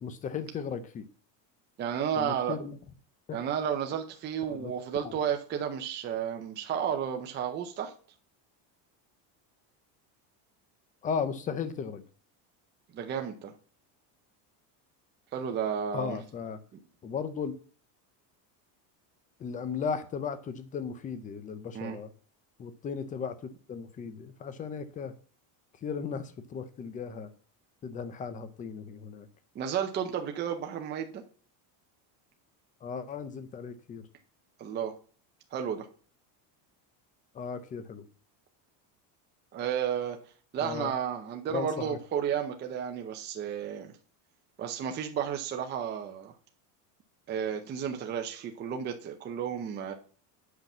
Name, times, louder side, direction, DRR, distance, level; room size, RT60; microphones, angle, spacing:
voice 1, 0.0-1.1 2.2-2.8 3.3-3.4 4.5-4.7 5.0-5.2 11.0-12.0 15.9-16.6 17.0-17.5 19.4-22.1 22.6-25.1 25.8-27.3 27.8-29.3 32.8-34.0 37.3-38.0 40.6-40.9 41.5-42.0, left 6 dB, 15° left, 12 dB, 0.5 m, -36 dB
voice 2, 1.8-2.6 3.3-7.9 12.9-13.5 15.3-16.2 16.7-16.8 21.7-22.0 29.5-31.2 34.6-34.9 35.5-35.9 39.5-40.2 40.5-43.9 44.6-46.3 47.3-49.9, right 8 dB, 20° right, 4 dB, 0.7 m, -32 dB
8.1 x 5.9 x 7.2 m, 0.41 s
cardioid pair, 175°, 49 cm